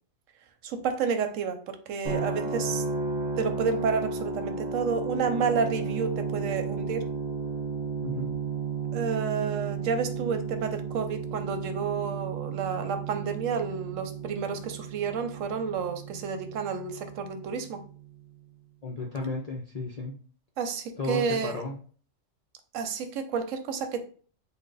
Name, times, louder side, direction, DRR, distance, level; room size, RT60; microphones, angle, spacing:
voice 1, 0.6-2.8 3.4-7.1 8.9-17.8 20.6-21.6 22.7-24.0, right 5 dB, 80° right, 8 dB, 1.0 m, -30 dB
sound 1, 2.0-18.0, right 4 dB, 35° right, 0.9 m, -33 dB
voice 2, 8.0-8.3 18.8-20.1 21.0-21.7, left 2 dB, 50° left, -1 dB, 0.4 m, -33 dB
3.3 x 2.2 x 3.8 m, 0.42 s
omnidirectional pair, 1.3 m